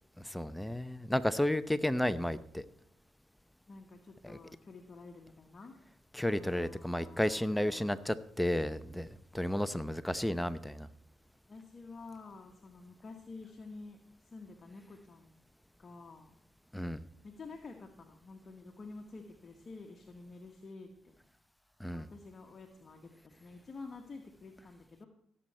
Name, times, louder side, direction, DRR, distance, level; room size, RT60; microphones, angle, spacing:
voice 1, 0.2-2.6 4.2-4.4 6.1-9.1 9.3-10.9 16.7-17.0 21.8-22.1, left 1 dB, 5° left, 13 dB, 0.7 m, -32 dB
voice 2, 3.7-5.7 6.3-8.1 11.5-14.0 14.2-15.3 15.8-16.3 17.2-21.1 21.9-25.1, left 3 dB, 40° left, 2 dB, 1.4 m, -50 dB
16.5 x 7.8 x 4.3 m, 0.69 s
supercardioid pair, 70°, 0 cm